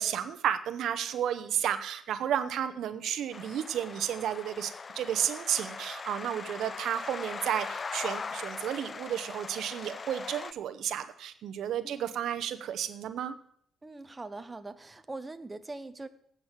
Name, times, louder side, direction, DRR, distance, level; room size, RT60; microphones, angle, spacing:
voice 1, 0.0-13.3, right 10 dB, 75° right, 11 dB, 0.8 m, -32 dB
sound 1, 3.3-10.5, left 4 dB, 35° left, 0.3 m, -40 dB
voice 2, 13.8-16.1, right 2 dB, 20° right, 10 dB, 0.8 m, -42 dB
9.0 x 6.1 x 8.0 m, 0.64 s
cardioid pair, 90°, 0 cm